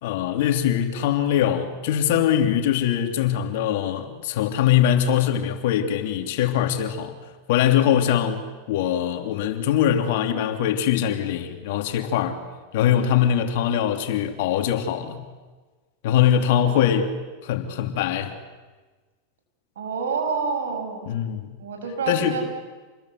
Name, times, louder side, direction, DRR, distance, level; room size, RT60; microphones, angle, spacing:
voice 1, 0.0-7.1 7.5-12.4 12.7-15.2 16.0-17.2 17.4-18.3 21.1-21.5 22.1-22.4, left 10 dB, 65° left, 3.2 m, -22 dB
voice 2, 16.5-16.8 19.8-21.1 21.6-22.4, right 5 dB, 85° right, 6.9 m, -28 dB
28.5 x 21.5 x 8.1 m
hypercardioid pair, 110°, 0 cm